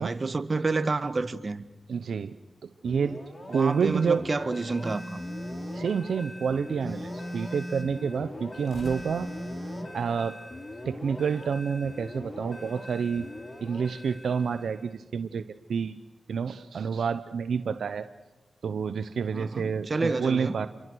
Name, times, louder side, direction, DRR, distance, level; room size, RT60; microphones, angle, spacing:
voice 1, 0.0-1.6 3.5-5.2 19.3-20.6, right 3 dB, 50° right, 1.5 m, -29 dB
voice 2, 1.9-2.3 2.6-3.2 3.5-4.2 5.7-9.3 9.9-10.4 10.9-13.3 13.6-15.4 15.7-15.9 16.3-18.1 18.6-20.7, right 6 dB, 85° right, 0.8 m, -28 dB
sound 1, 2.7-4.5 8.6-11.7, left 1 dB, 70° left, 6.8 m, -53 dB
sound 2, 2.8-15.0, left 1 dB, 40° left, 5.1 m, -42 dB
Telephone, 4.8-6.0 6.8-8.0 8.8-10.0, equal, ahead, 3.2 m, -38 dB
29.5 x 23.5 x 6.4 m
cardioid pair, 55°, 0 cm